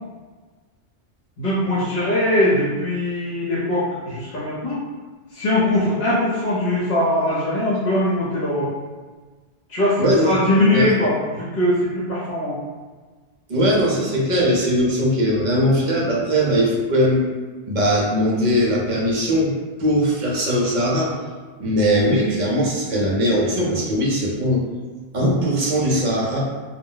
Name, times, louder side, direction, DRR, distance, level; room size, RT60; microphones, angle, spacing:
voice 1, 1.4-4.8 5.3-8.7 9.7-12.6, left 1 dB, 55° left, -9 dB, 0.8 m, -21 dB
voice 2, 10.0-10.3 10.7-10.9 13.5-17.2 17.7-19.5 19.8-21.1 21.6-24.6 25.1-26.4, equal, 50° right, -4 dB, 0.6 m, -20 dB
2.2 x 2.0 x 3.7 m, 1.4 s
omnidirectional pair, 1.2 m